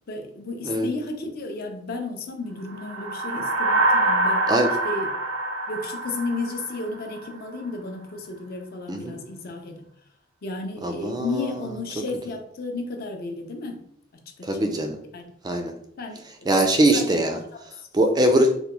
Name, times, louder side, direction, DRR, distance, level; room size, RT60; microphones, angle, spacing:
voice 1, 0.1-4.5 4.8-5.1 5.7-9.9 10.4-13.8 14.4-14.6 15.1-15.2 16.0-16.5 16.9-17.2 17.5-17.9 18.3-18.4, left 3 dB, 50° left, 4 dB, 0.5 m, -33 dB
sound 1, 2.7-7.3, right 2 dB, 85° right, 0.5 m, -25 dB
voice 2, 10.8-11.5 14.4-15.0 15.4-15.7 16.5-17.4 17.9-18.6, right 1 dB, 20° right, 4 dB, 0.3 m, -21 dB
3.3 x 2.1 x 2.9 m, 0.69 s
head